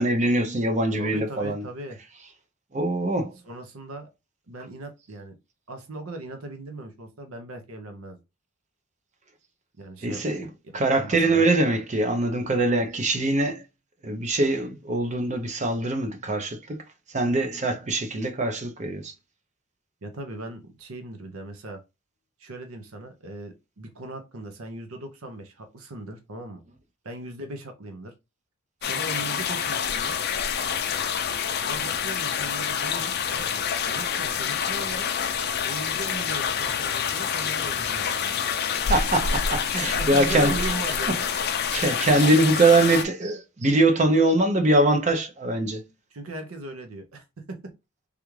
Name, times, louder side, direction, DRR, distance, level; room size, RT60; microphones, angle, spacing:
voice 1, 0.0-1.7 2.7-3.4 10.0-10.5 10.7-13.7 14.0-19.1 38.7-40.7 41.1-41.2 41.7-45.9, right 2 dB, 35° right, 0.6 m, -23 dB
voice 2, 1.0-2.0 3.4-4.1 4.5-5.4 5.7-8.2 9.8-10.2 11.0-11.4 20.0-21.8 22.4-26.6 27.0-28.1 28.8-30.2 31.6-35.1 35.6-38.3 39.9-41.4 46.1-47.7, right 2 dB, 75° right, 0.7 m, -38 dB
sound 1, 28.8-43.1, left 7 dB, 50° left, 0.4 m, -27 dB
3.4 x 2.4 x 3.1 m
head